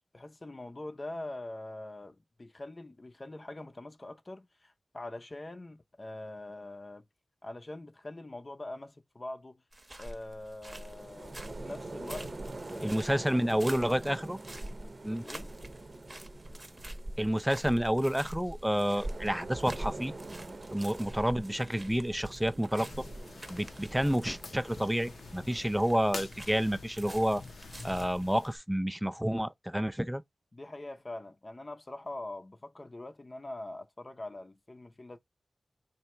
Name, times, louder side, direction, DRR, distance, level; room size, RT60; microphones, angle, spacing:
voice 1, 0.1-7.0 7.4-9.6 10.0-12.3 12.7-13.0 13.3-14.0 15.1-15.5 30.5-35.2, left 2 dB, 35° left, 0.7 m, -43 dB
sound 1, 9.7-28.6, right 1 dB, 25° right, 0.9 m, -46 dB
sound 2, 10.7-25.9, right 2 dB, 50° right, 0.8 m, -46 dB
voice 2, 12.8-14.4 15.0-15.2 17.2-20.1 20.7-23.0 23.5-27.4 27.8-30.2, equal, 5° right, 0.4 m, -29 dB
sound 3, 22.8-28.5, left 3 dB, 85° left, 0.8 m, -47 dB
3.1 x 2.7 x 4.3 m
wide cardioid pair, 60°, 0 cm